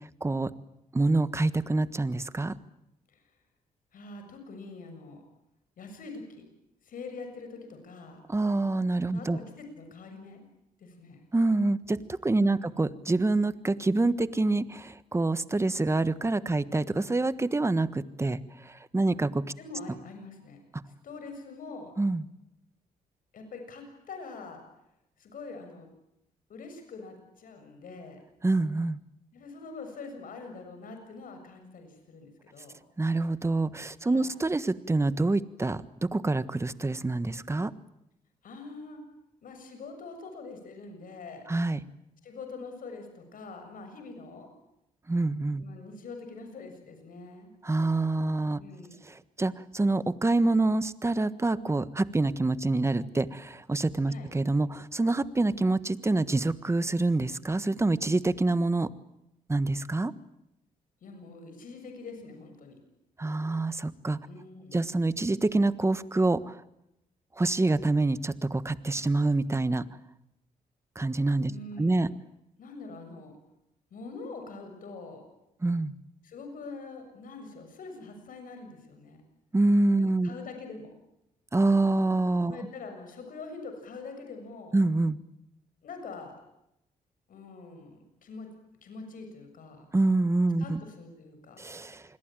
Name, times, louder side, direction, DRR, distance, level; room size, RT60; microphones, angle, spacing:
voice 1, 0.2-0.5 0.9-2.5 8.3-9.4 11.3-18.4 18.7-19.4 22.0-22.2 28.4-29.0 33.0-37.7 41.5-41.8 45.1-45.6 47.6-48.6 49.4-58.9 59.5-60.1 63.2-64.2 64.7-66.4 67.4-69.8 70.9-71.5 71.8-72.1 75.6-75.9 79.5-80.3 81.5-82.6 84.7-85.2 89.9-90.8 91.6-92.0, right 2 dB, 20° right, 14 dB, 1.4 m, -26 dB
voice 2, 3.9-5.2 5.8-6.4 6.8-8.2 9.1-10.4 10.8-11.2 12.4-12.8 19.6-20.6 21.0-21.9 23.3-24.6 25.2-25.9 26.5-28.2 29.3-32.7 34.1-34.3 38.4-39.0 39.4-41.4 42.2-44.5 45.6-47.5 48.6-49.0 54.1-54.3 61.0-62.8 64.3-65.0 71.5-72.1 72.6-73.3 73.9-75.3 76.2-79.2 79.9-80.9 82.4-84.8 85.8-86.3 87.3-88.5 88.8-89.9 90.6-91.6, left 3 dB, 70° left, 6 dB, 6.9 m, -44 dB
27.5 x 21.0 x 9.1 m, 0.84 s
cardioid pair, 75°, 15 cm